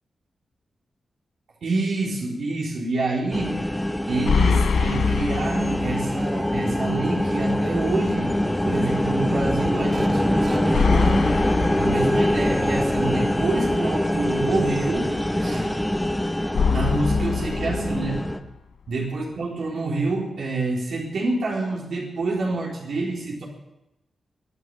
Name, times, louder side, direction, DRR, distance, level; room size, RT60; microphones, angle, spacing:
voice 1, 1.6-3.6 4.1-11.2 11.8-15.1 15.4-15.7 16.6-18.2 18.9-23.4, right 3 dB, 80° right, -4 dB, 4.2 m, -27 dB
sound 1, 3.3-18.4, left 1 dB, 5° left, 1.2 m, -24 dB
sound 2, 4.3-6.3 6.6-6.7 10.7-12.7 16.5-18.5, left 6 dB, 85° left, 0.7 m, -24 dB
sound 3, 9.9-11.9, right 3 dB, 40° right, 1.1 m, -37 dB
24.0 x 9.7 x 5.6 m, 0.92 s
wide cardioid pair, 110°, 0 cm